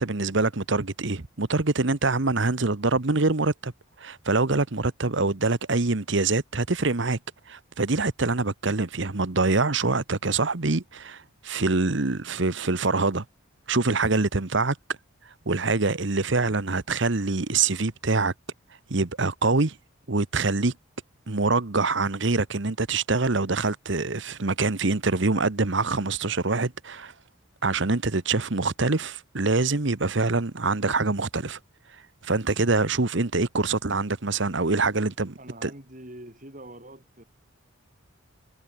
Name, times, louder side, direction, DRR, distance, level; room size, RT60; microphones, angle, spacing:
voice 1, 0.0-3.7 4.0-7.2 7.5-13.2 13.7-14.8 15.5-18.3 18.9-19.8 20.1-20.7 21.3-27.1 27.6-31.6 32.2-35.7, right 3 dB, 60° right, 1.1 m, -25 dB
voice 2, 35.4-37.2, right 1 dB, 40° right, 5.2 m, -44 dB
head